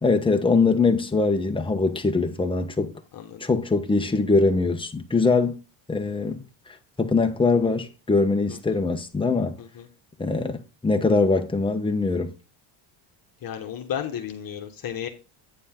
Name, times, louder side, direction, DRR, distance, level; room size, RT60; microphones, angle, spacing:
voice 1, 0.0-2.9 3.4-5.6 5.9-6.4 7.0-9.6 10.2-12.3, left 3 dB, 10° left, 1.2 m, -22 dB
voice 2, 3.1-3.4 8.5-8.8 9.6-9.9 13.4-15.1, left 9 dB, 45° left, 1.6 m, -33 dB
9.2 x 6.8 x 3.8 m
cardioid pair, 115°, 50 cm